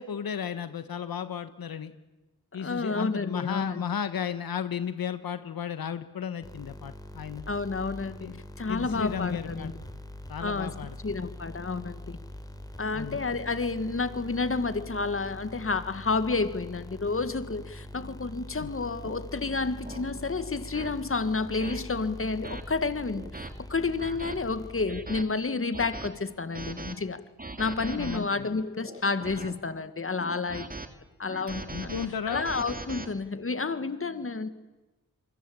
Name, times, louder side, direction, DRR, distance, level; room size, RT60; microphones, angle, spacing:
voice 1, 0.0-1.9 2.5-7.4 8.2-8.4 8.7-9.7 10.3-10.9 12.9-13.2 18.6-18.7 28.0-28.5 31.7-32.5, left 8 dB, 90° left, 11 dB, 1.3 m, -34 dB
voice 2, 2.6-3.8 7.5-8.3 8.6-9.7 10.4-10.7 11.0-12.2 12.8-27.2 27.6-30.7 31.2-31.9 32.3-34.5, left 3 dB, 40° left, 11 dB, 1.9 m, -30 dB
sound 1, 6.4-25.2, left 1 dB, 10° left, 3.8 m, -43 dB
sound 2, 19.0-19.2 19.8-20.0 20.7-20.9 21.6-21.8 22.4-22.6 23.1-23.5 24.0-24.4 24.9-25.2 25.7-26.1 26.5-26.9 27.4-28.2 28.8-29.5 30.2-30.9 31.3-33.1, right 2 dB, 25° right, 2.2 m, -39 dB
27.5 x 23.5 x 8.7 m, 1.1 s
wide cardioid pair, 80°, 35 cm